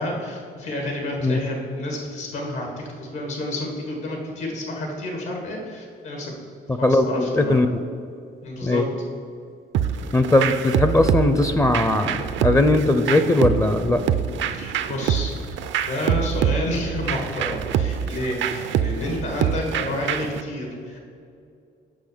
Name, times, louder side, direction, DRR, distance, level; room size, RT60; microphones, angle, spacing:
voice 1, 0.0-6.3 6.7-7.6 8.4-8.8 14.5-15.3 15.8-21.0, left 1 dB, 85° left, 0 dB, 1.9 m, -30 dB
voice 2, 6.7-7.8 8.6-8.8 10.1-14.0, left 2 dB, 15° left, 8 dB, 0.4 m, -19 dB
sound 1, 9.7-20.4, right 8 dB, 75° right, 0.5 m, -25 dB
6.2 x 5.6 x 6.7 m, 2.4 s
cardioid pair, 90°, 20 cm